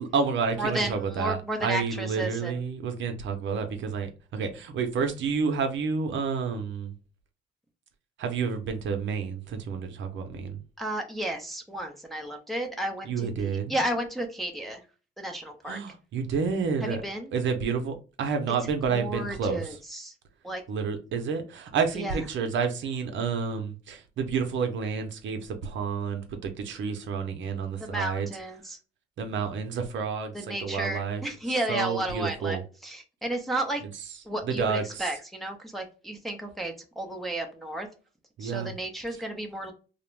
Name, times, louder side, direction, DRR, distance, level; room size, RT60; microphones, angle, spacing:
voice 1, 0.0-6.9 8.2-10.6 13.0-13.8 15.7-17.0 17.3-19.8 20.7-28.3 29.2-31.2 31.7-32.6 34.4-35.1 38.4-38.7, right 5 dB, 70° right, 0.6 m, -30 dB
voice 2, 0.6-2.6 10.8-14.8 15.2-15.8 16.8-17.3 18.9-20.1 20.4-20.6 21.9-22.2 27.8-28.8 30.3-33.8 34.2-37.9 38.4-39.7, right 1 dB, ahead, 0.6 m, -33 dB
2.5 x 2.1 x 3.0 m
cardioid pair, 90°, 20 cm